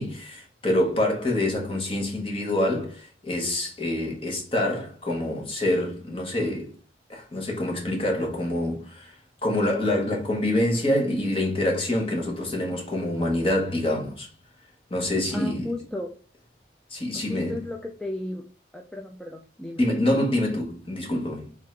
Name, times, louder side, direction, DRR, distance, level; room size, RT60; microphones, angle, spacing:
voice 1, 0.0-6.7 7.1-9.1 9.4-14.3 14.9-15.7 16.9-17.6 19.8-21.6, left 1 dB, 30° left, 1.1 m, -26 dB
voice 2, 15.3-16.1 17.3-18.4 18.7-19.8, left 1 dB, 5° left, 0.3 m, -34 dB
3.6 x 3.5 x 3.2 m
head